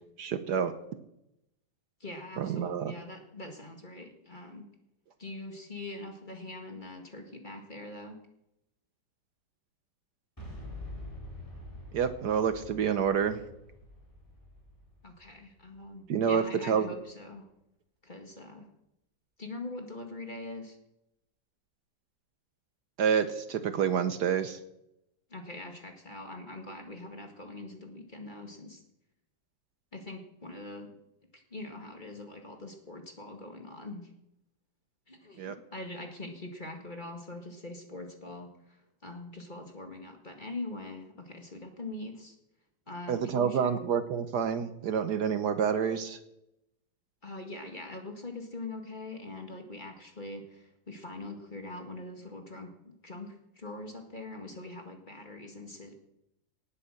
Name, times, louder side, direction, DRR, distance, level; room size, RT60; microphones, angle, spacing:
voice 1, 0.2-0.7 2.4-2.9 11.9-13.4 16.1-16.9 23.0-24.6 35.4-35.6 43.1-46.2, right 7 dB, 65° right, 10 dB, 1.4 m, -28 dB
voice 2, 2.0-4.7 5.2-8.2 15.0-17.5 18.0-18.7 19.4-20.8 25.3-28.8 29.9-30.9 31.3-34.1 35.1-42.4 42.9-43.7 47.2-52.7 53.0-55.9, left 2 dB, 25° left, 3 dB, 2.0 m, -43 dB
Boom, 10.4-16.2, left 1 dB, 10° left, 4.7 m, -46 dB
18.5 x 8.5 x 6.5 m, 0.84 s
omnidirectional pair, 2.0 m